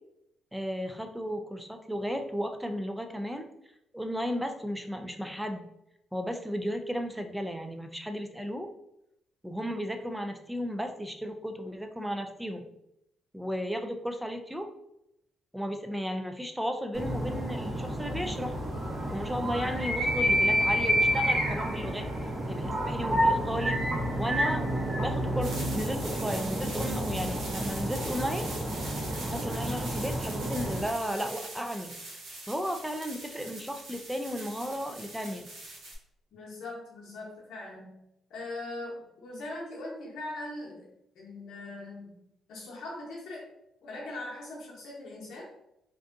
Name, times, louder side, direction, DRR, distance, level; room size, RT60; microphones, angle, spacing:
voice 1, 0.5-3.5 3.9-5.7 6.1-8.7 9.4-12.7 13.3-14.7 15.5-18.6 19.1-22.1 22.4-23.8 24.1-28.5 29.2-31.9 32.5-35.5, equal, 5° right, 5 dB, 0.3 m, -34 dB
sound 1, 16.9-30.9, equal, 30° right, 0.9 m, -29 dB
sound 2, 25.4-36.0, right 2 dB, 80° right, 0.8 m, -42 dB
voice 2, 36.3-37.9 38.3-40.9 41.1-42.2 42.5-43.5 43.8-45.5, left 2 dB, 70° left, -5 dB, 0.8 m, -40 dB
2.5 x 2.4 x 2.5 m, 0.82 s
cardioid pair, 90°, 0 cm